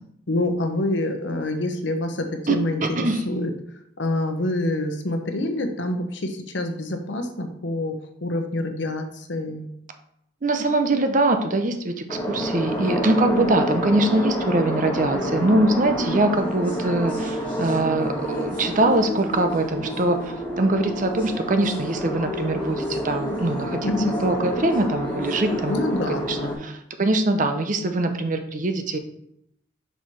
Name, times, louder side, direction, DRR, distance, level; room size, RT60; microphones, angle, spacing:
voice 1, 0.3-2.8 3.3-3.5 4.0-9.7 23.8-24.2 25.7-26.6, left 1 dB, 75° left, 6 dB, 0.9 m, -26 dB
voice 2, 2.5-3.2 10.4-25.9 26.3-29.0, right 2 dB, 45° right, 7 dB, 0.7 m, -23 dB
sound 1, 12.1-26.5, equal, 10° left, 1.9 m, -28 dB
5.6 x 4.5 x 4.7 m, 0.75 s
head